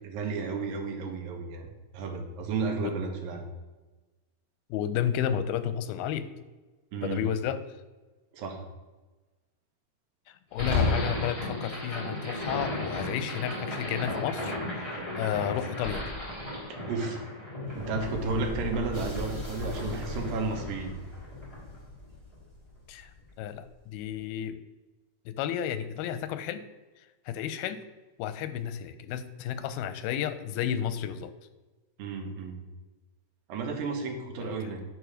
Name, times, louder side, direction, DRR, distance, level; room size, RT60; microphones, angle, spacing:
voice 1, 0.0-1.7 1.9-3.5 6.9-7.3 8.3-8.6 16.7-17.2 17.7-20.9 32.0-32.6 33.5-34.8, right 4 dB, 75° right, 4 dB, 2.8 m, -33 dB
voice 2, 4.7-6.3 7.0-7.6 10.3-14.6 14.9-16.1 22.9-23.1 23.4-24.6 25.3-26.6 27.0-27.8 28.2-31.3 34.4-34.5, left 9 dB, 90° left, 13 dB, 2.5 m, -32 dB
sound 1, 10.5-22.7, left 2 dB, 10° left, 3.0 m, -34 dB
9.8 x 5.1 x 6.3 m, 1.2 s
omnidirectional pair, 4.3 m